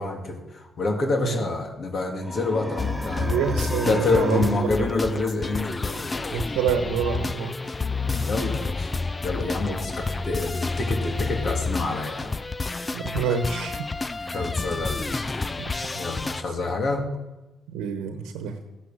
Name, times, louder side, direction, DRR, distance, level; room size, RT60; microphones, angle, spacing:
voice 1, 0.0-3.4 3.8-6.3 8.2-12.3 13.3-13.4 14.3-15.3 16.0-17.0, left 3 dB, 50° left, 2 dB, 2.7 m, -27 dB
sound 1, 2.2-6.3, equal, ahead, 4.1 m, -34 dB
sound 2, 2.8-16.4, left 3 dB, 25° left, 0.6 m, -29 dB
voice 2, 3.2-4.5 4.8-4.9 6.3-7.5 12.9-13.8 14.2-14.5 15.6-15.7 17.7-18.6, right 7 dB, 90° right, 7 dB, 1.2 m, -27 dB
15.0 x 9.9 x 7.7 m, 1.1 s
supercardioid pair, 65°, 0 cm